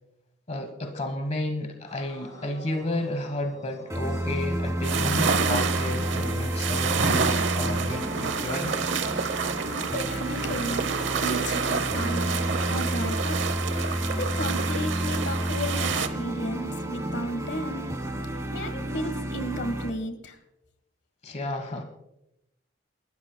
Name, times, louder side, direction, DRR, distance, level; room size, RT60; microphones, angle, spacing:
voice 1, 0.5-8.8 21.2-21.8, left 1 dB, 35° left, 6 dB, 1.3 m, -32 dB
sound 1, 1.9-18.0, left 1 dB, 20° left, 4.6 m, -48 dB
sound 2, 3.9-19.9, right 1 dB, 15° right, 1.4 m, -30 dB
sound 3, 4.8-16.1, right 5 dB, 80° right, 0.9 m, -29 dB
voice 2, 9.7-10.9 11.2-13.5 13.9-17.9 18.5-20.4, equal, 65° left, 8 dB, 1.5 m, -34 dB
28.5 x 13.5 x 2.2 m, 0.87 s
head